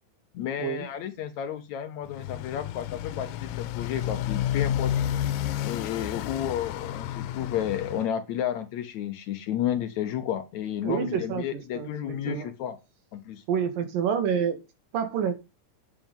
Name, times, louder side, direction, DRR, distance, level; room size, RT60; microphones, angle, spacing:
voice 1, 0.3-5.1 5.6-12.8 13.1-13.4, left 10 dB, 70° left, 9 dB, 1.9 m, -32 dB
Motorcycle, 2.1-8.1, left 11 dB, 90° left, 2.5 m, -31 dB
voice 2, 10.8-12.0 12.3-12.5 13.5-14.6 14.9-15.3, right 7 dB, 80° right, 8 dB, 3.6 m, -28 dB
8.9 x 8.3 x 5.4 m, 0.26 s
omnidirectional pair, 3.9 m